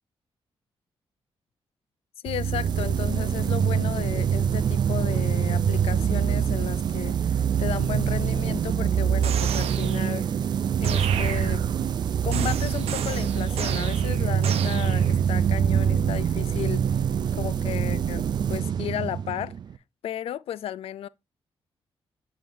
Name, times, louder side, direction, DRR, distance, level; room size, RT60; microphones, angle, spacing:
voice 1, 2.2-10.3 10.8-11.6 12.2-16.8 17.3-19.5 20.0-21.1, left 11 dB, 75° left, 0.4 m, -34 dB
sound 1, 2.3-19.8, right 8 dB, 45° right, 0.3 m, -25 dB
sound 2, 9.2-10.2 10.8-11.9 12.3-15.2, right 8 dB, 90° right, 0.7 m, -34 dB
7.5 x 7.0 x 2.7 m
wide cardioid pair, 165°, 10 cm